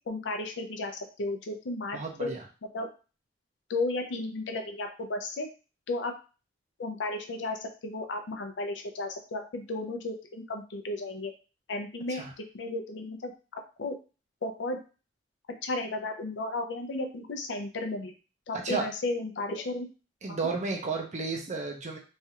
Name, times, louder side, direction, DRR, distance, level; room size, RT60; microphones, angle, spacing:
voice 1, 0.1-2.4 2.7-2.9 3.7-5.5 5.9-6.1 6.8-11.3 11.7-13.9 14.4-14.8 15.6-18.1 18.5-19.9 20.3-20.4, left 2 dB, 90° left, 5 dB, 0.5 m, -34 dB
voice 2, 1.9-2.4 12.1-12.3 18.5-18.9 20.2-22.0, right 4 dB, 40° right, 1 dB, 0.5 m, -32 dB
3.1 x 2.4 x 2.7 m, 0.34 s
head